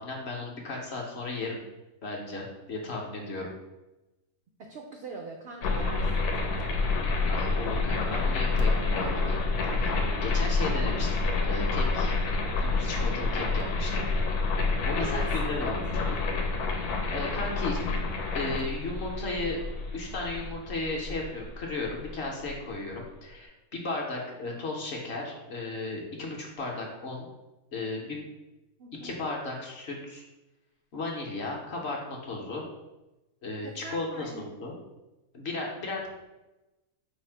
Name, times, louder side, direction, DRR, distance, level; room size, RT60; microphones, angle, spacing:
voice 1, 0.0-1.6 2.0-3.5 7.3-9.4 9.7-10.0 10.2-12.1 12.5-14.1 14.8-16.2 17.1-17.8 18.3-19.6 19.9-27.3 27.7-28.2 29.0-30.3 30.9-32.6 33.4-34.7 35.3-36.1, left 2 dB, 55° left, -1 dB, 0.8 m, -35 dB
voice 2, 4.7-6.7 14.9-15.3 15.5-15.7 28.8-29.2 33.6-34.5, right 3 dB, 90° right, 1 dB, 0.5 m, -42 dB
sound 1, 5.6-22.5, left 3 dB, 90° left, 1.2 m, -28 dB
4.8 x 2.0 x 4.4 m, 1.0 s
omnidirectional pair, 1.6 m